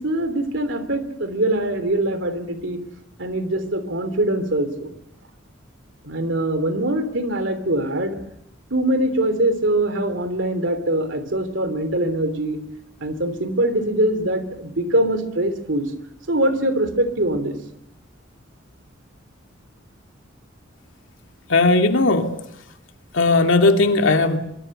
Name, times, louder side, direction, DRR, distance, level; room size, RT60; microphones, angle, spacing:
voice 1, 0.0-2.8 3.2-4.9 6.0-8.2 8.7-12.6 13.0-15.9 16.3-17.5, right 1 dB, 70° right, 10 dB, 3.3 m, -23 dB
voice 2, 21.5-22.3 23.1-24.4, left 3 dB, 75° left, 4 dB, 2.6 m, -17 dB
24.5 x 24.0 x 6.7 m, 0.78 s
head